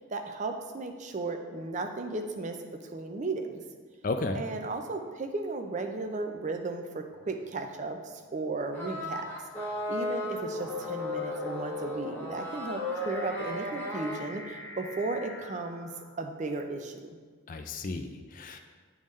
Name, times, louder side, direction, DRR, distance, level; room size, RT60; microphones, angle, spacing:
voice 1, 0.0-2.6 2.8-3.6 4.3-9.3 9.9-15.9 16.2-17.0, right 3 dB, 35° right, 5 dB, 0.4 m, -35 dB
voice 2, 4.0-4.4 17.5-18.6, left 3 dB, 35° left, 6 dB, 0.3 m, -33 dB
sound 1, 7.2-7.6 8.4-16.6, left 1 dB, 75° left, 1.7 m, -48 dB
sound 2, 8.7-14.2, left 1 dB, 10° left, 0.9 m, -35 dB
10.0 x 3.6 x 3.2 m, 1.5 s
head